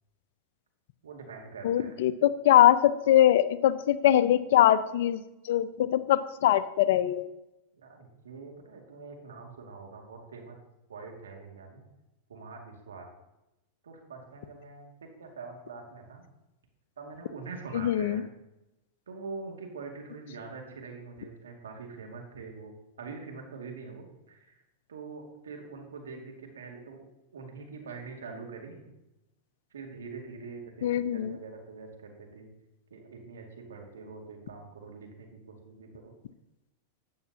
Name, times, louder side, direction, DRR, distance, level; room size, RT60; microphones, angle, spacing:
voice 1, 1.0-2.0 7.8-10.6 10.9-11.8 12.3-13.1 13.8-16.2 17.0-18.2 19.1-24.6 24.9-27.0 27.3-28.9 29.7-32.5 32.9-36.1, right 4 dB, 80° right, 1 dB, 2.1 m, -44 dB
voice 2, 1.6-5.2 5.5-7.3 17.7-18.2 30.8-31.3, left 12 dB, 65° left, 15 dB, 0.6 m, -22 dB
12.5 x 8.6 x 2.8 m, 0.93 s
hypercardioid pair, 100°, 0 cm